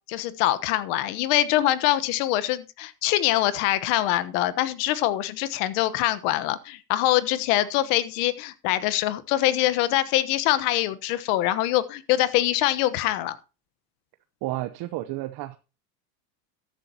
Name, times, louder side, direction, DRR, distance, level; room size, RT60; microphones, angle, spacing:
voice 1, 0.1-13.4, left 14 dB, 65° left, 14 dB, 1.3 m, -24 dB
voice 2, 14.4-15.6, right 16 dB, 50° right, 10 dB, 0.9 m, -31 dB
14.0 x 11.0 x 2.9 m, 0.31 s
supercardioid pair, 130°, 49 cm